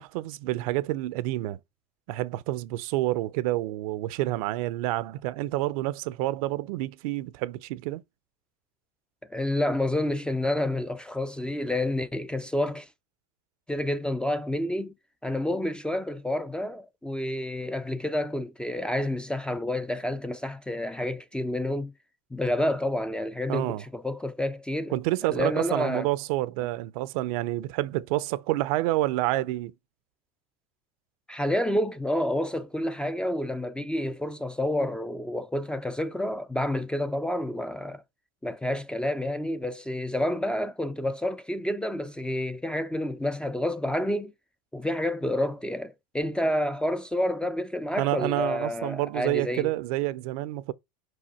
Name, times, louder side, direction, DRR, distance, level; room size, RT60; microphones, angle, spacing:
voice 1, 0.0-1.6 2.1-8.0 23.5-23.8 24.9-29.7 48.0-50.7, right 17 dB, 70° right, 0.5 m, -28 dB
voice 2, 9.3-12.9 13.7-14.9 15.2-21.9 22.3-26.1 31.3-38.0 38.4-44.3 44.7-49.7, left 1 dB, 5° left, 0.4 m, -29 dB
5.1 x 4.8 x 4.2 m
supercardioid pair, 125°, 19 cm